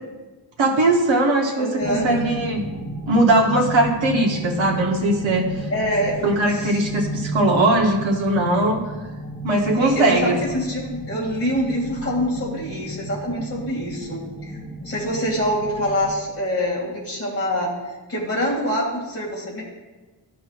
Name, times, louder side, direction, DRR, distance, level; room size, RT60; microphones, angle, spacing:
voice 1, 0.6-2.6 3.1-5.5 6.2-8.8 9.4-10.3, right 2 dB, 65° right, -1 dB, 1.1 m, -19 dB
voice 2, 1.6-2.1 5.7-6.1 6.5-6.8 9.8-19.6, equal, 30° left, -4 dB, 2.4 m, -25 dB
sound 1, 1.8-16.1, right 1 dB, ahead, 1.6 m, -33 dB
13.5 x 6.1 x 2.5 m, 1.2 s
wide cardioid pair, 140°, 48 cm